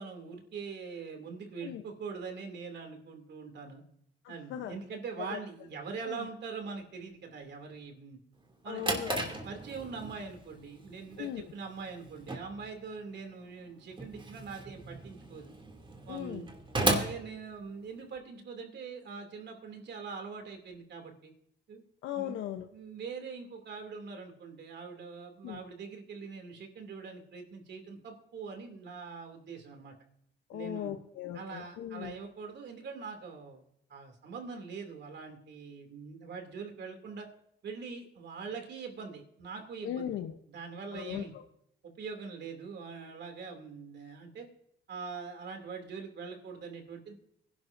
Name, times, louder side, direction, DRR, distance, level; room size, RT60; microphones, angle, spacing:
voice 1, 0.0-3.8 4.3-8.2 8.6-9.0 9.4-15.5 16.1-16.5 16.8-21.3 21.7-21.8 22.1-22.4 22.7-29.9 30.5-31.0 31.3-33.6 33.9-37.3 37.6-40.1 40.5-41.3 41.8-44.5 44.9-47.1, right 5 dB, 60° right, 4 dB, 2.7 m, -43 dB
voice 2, 4.2-4.7 5.3-5.4 6.1-6.2 8.7-9.3 11.2-11.5 16.1-16.5 22.0-22.7 25.4-25.6 30.5-32.1 39.8-40.3 40.9-41.2, left 11 dB, 85° left, 5 dB, 0.9 m, -38 dB
Drawer open or close, 8.4-18.2, right 2 dB, 25° right, 2.6 m, -37 dB
24.0 x 11.5 x 2.6 m, 0.73 s
cardioid pair, 90°, 20 cm